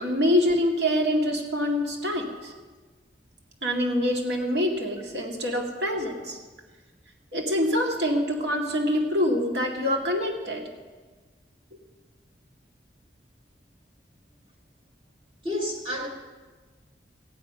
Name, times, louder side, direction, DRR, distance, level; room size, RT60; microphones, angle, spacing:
voice 1, 0.0-2.5 3.6-6.4 7.3-10.7, left 1 dB, 75° right, 0 dB, 2.1 m, -25 dB
voice 2, 15.4-16.1, left 1 dB, 30° right, 0 dB, 2.0 m, -29 dB
15.0 x 9.9 x 5.5 m, 1.4 s
head